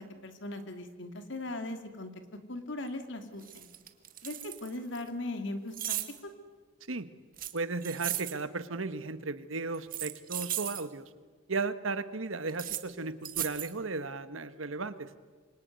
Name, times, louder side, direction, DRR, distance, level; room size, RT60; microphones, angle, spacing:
voice 1, 0.0-2.1 2.5-3.7 4.2-6.0 6.2-6.3, left 2 dB, 65° left, 8 dB, 2.7 m, -39 dB
sound 1, 2.9-3.0 3.4-5.0 5.7-6.2 7.4-8.4 9.7-10.8 12.5-12.8 13.2-13.7, right 12 dB, 45° right, 1.8 m, -36 dB
voice 2, 7.5-11.1 11.5-15.1, right 3 dB, 80° right, 12 dB, 1.5 m, -35 dB
26.5 x 23.5 x 9.5 m, 1.5 s
head